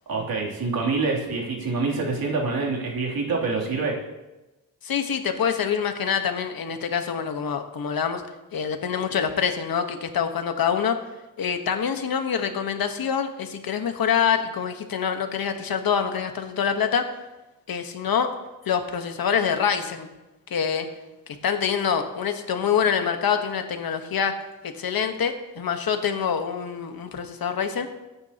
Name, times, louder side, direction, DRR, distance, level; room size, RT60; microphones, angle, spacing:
voice 1, 0.1-3.9, right 4 dB, 90° right, -3 dB, 3.1 m, -26 dB
voice 2, 4.8-8.2 8.5-11.0 11.4-17.1 17.7-18.3 18.6-20.1 20.5-20.9 21.3-24.3 24.6-27.9, left 7 dB, 80° left, 6 dB, 1.3 m, -25 dB
22.5 x 9.6 x 2.9 m, 1.1 s
wide cardioid pair, 175°, 35 cm